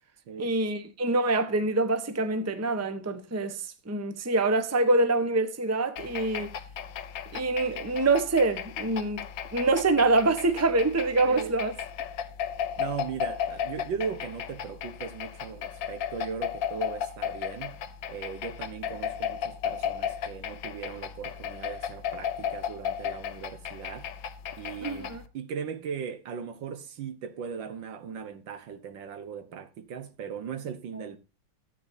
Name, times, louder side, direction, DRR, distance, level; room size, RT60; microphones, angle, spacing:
voice 1, 0.4-6.5 7.3-9.2 9.5-11.7 24.8-25.2, right 2 dB, 10° right, 0.7 m, -25 dB
sound 1, 6.0-25.3, left 9 dB, 75° left, 1.6 m, -35 dB
voice 2, 11.2-11.5 12.8-17.8 18.1-24.1 24.6-31.2, right 7 dB, 80° right, 1.8 m, -38 dB
14.0 x 8.6 x 2.7 m
omnidirectional pair, 2.0 m